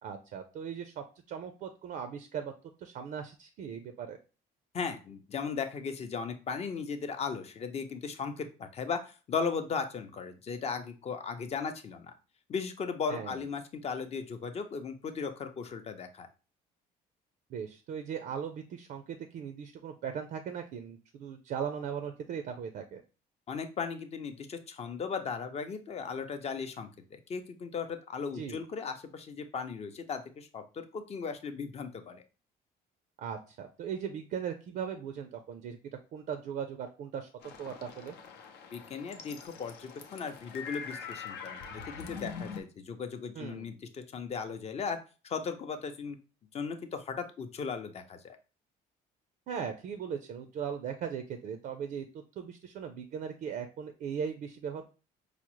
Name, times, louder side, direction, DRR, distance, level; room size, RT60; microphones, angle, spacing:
voice 1, 0.0-2.5 2.8-4.2 13.1-13.4 17.5-23.0 28.3-28.6 33.2-35.8 36.1-38.2 43.4-43.7 49.5-52.1 52.4-54.9, right 7 dB, 60° right, 7 dB, 0.4 m, -38 dB
voice 2, 4.7-12.1 12.5-16.3 23.5-32.2 38.7-41.6 41.9-45.0 45.2-46.2 46.5-48.4, left 5 dB, 40° left, 7 dB, 0.5 m, -37 dB
sound 1, 37.4-42.6, left 6 dB, 80° left, 0.6 m, -43 dB
4.8 x 2.0 x 2.9 m, 0.34 s
cardioid pair, 110°, 17 cm